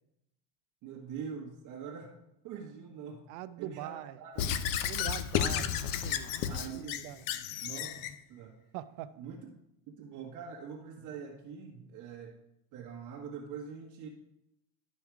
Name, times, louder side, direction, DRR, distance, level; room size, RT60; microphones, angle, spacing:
voice 1, 0.8-2.1 2.4-3.2 3.6-4.6 6.5-7.1 7.6-8.0 8.3-8.6 9.2-9.4 9.9-12.3 12.7-14.1, right 6 dB, 45° right, -1 dB, 1.4 m, -44 dB
voice 2, 3.3-4.2 4.9-7.3 8.7-9.2, right 13 dB, 65° right, 13 dB, 0.7 m, -43 dB
Squeak / Writing, 4.4-8.1, left 9 dB, 50° left, 0.7 m, -32 dB
11.5 x 5.5 x 4.7 m, 0.83 s
supercardioid pair, 140°, 43 cm